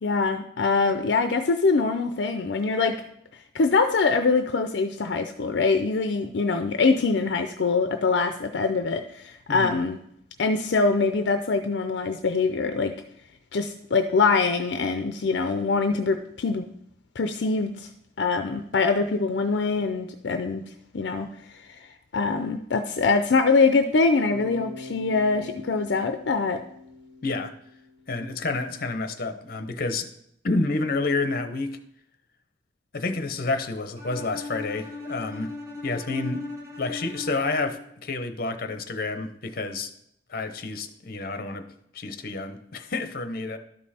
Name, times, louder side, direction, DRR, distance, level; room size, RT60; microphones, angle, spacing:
voice 1, 0.0-3.0 3.3-10.0 10.4-12.9 13.5-16.7 17.2-17.9 18.2-20.6 20.9-21.3 21.6-26.6, left 4 dB, 75° left, 7 dB, 0.5 m, -24 dB
Bass guitar, 24.3-28.2, left 3 dB, 65° right, 2.1 m, -43 dB
voice 2, 27.2-27.5 28.1-30.1 30.4-31.8 32.9-35.5 35.8-36.5 36.8-39.9 40.3-41.7 41.9-43.6, left 3 dB, 55° left, 9 dB, 0.9 m, -29 dB
Bowed string instrument, 34.0-37.9, left 3 dB, 15° right, 1.4 m, -38 dB
12.0 x 5.4 x 4.2 m, 0.74 s
head